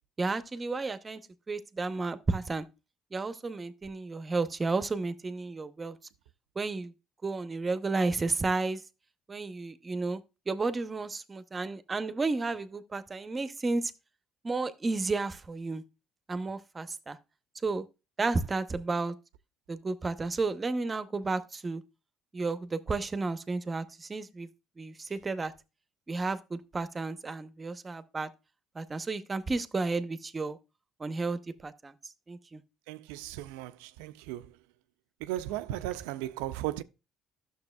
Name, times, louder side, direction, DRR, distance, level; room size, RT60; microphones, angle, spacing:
voice 1, 0.2-1.2 1.5-2.7 3.1-6.0 6.6-6.9 7.2-8.8 9.3-10.2 10.5-13.9 14.4-15.8 16.3-17.2 17.6-17.8 18.2-19.1 19.7-21.8 22.3-24.5 24.8-25.5 26.1-28.3 28.7-30.6 31.0-32.6, right 3 dB, 30° right, 0.8 m, -32 dB
voice 2, 32.9-34.6 35.2-36.8, right 14 dB, 85° right, 0.4 m, -36 dB
11.5 x 6.7 x 2.3 m
supercardioid pair, 70°, 0 cm